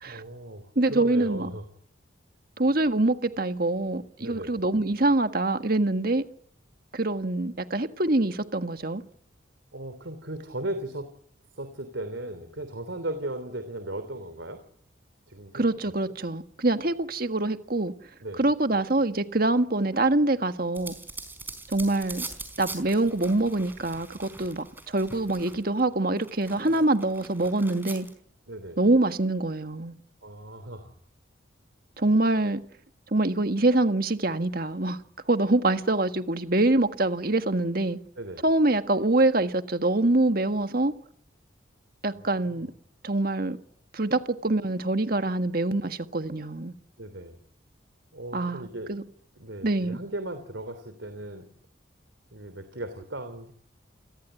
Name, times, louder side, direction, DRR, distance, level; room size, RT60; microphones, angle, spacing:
voice 1, 0.0-1.6 4.2-4.5 9.7-11.1 11.5-14.6 15.3-15.9 18.2-18.4 26.6-26.7 28.5-28.8 30.2-30.9 38.1-38.4 42.1-42.7 47.0-47.4 48.1-48.9 49.4-51.5 52.3-53.5, right 1 dB, 75° right, 3.2 m, -37 dB
voice 2, 0.8-1.5 2.6-6.3 6.9-9.0 15.5-17.9 18.4-21.0 21.7-22.3 22.6-28.1 28.8-29.9 32.0-32.6 33.1-35.0 35.3-38.0 38.4-40.9 42.0-42.7 43.0-43.6 43.9-46.7 48.3-49.0 49.6-50.0, right 2 dB, 50° right, 1.6 m, -25 dB
sound 1, 20.7-25.8 26.2-28.1, right 3 dB, 10° right, 4.4 m, -42 dB
29.0 x 20.5 x 9.1 m
head